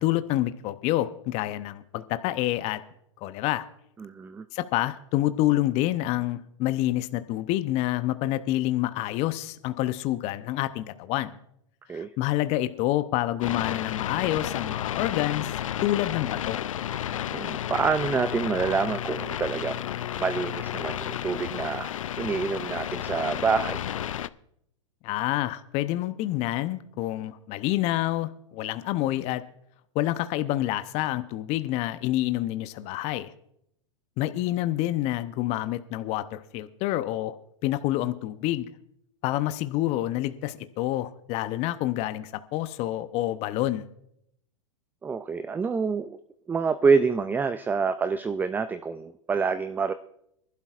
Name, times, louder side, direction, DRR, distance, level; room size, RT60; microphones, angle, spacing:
voice 1, 0.0-2.8 3.2-3.6 4.5-11.3 11.9-15.5 15.8-16.6 25.0-29.4 29.9-33.3 34.2-37.4 37.6-38.7 39.2-43.9, left 15 dB, 40° left, 12 dB, 0.7 m, -28 dB
voice 2, 4.0-4.4 11.9-12.1 17.3-19.9 20.2-23.9 45.0-46.2 46.5-49.9, right 5 dB, 10° right, 11 dB, 0.4 m, -27 dB
sound 1, 13.4-24.3, left 11 dB, 80° left, 0.4 m, -32 dB
24.0 x 12.0 x 2.5 m, 0.74 s
hypercardioid pair, 105°, 17 cm